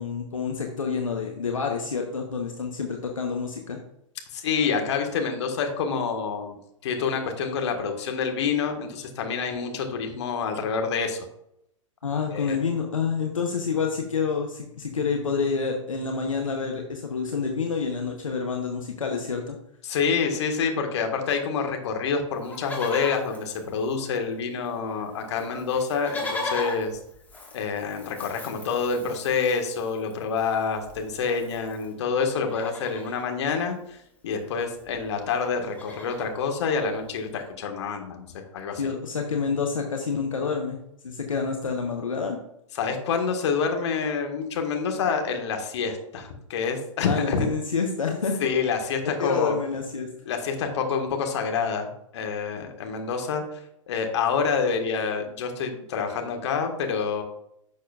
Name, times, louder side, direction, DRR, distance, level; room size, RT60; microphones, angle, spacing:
voice 1, 0.0-3.8 12.0-19.6 38.8-40.8 41.0-42.4 47.1-48.4 49.0-50.1, left 5 dB, 80° left, 2 dB, 1.0 m, -28 dB
voice 2, 4.3-6.6 6.8-11.2 12.3-12.6 19.8-26.9 27.5-38.8 42.7-47.5 48.4-49.6 50.2-53.4 53.9-57.2, left 5 dB, 60° left, 4 dB, 1.6 m, -27 dB
Livestock farm animals working animals, 22.4-24.4 24.7-24.8 25.0-31.9 32.4-33.3 34.5-34.6 34.8-35.0 35.4-36.4 37.0-37.1, left 2 dB, 10° left, 1.6 m, -39 dB
10.5 x 6.5 x 2.4 m, 0.78 s
figure-of-eight pair, 105°, 17 cm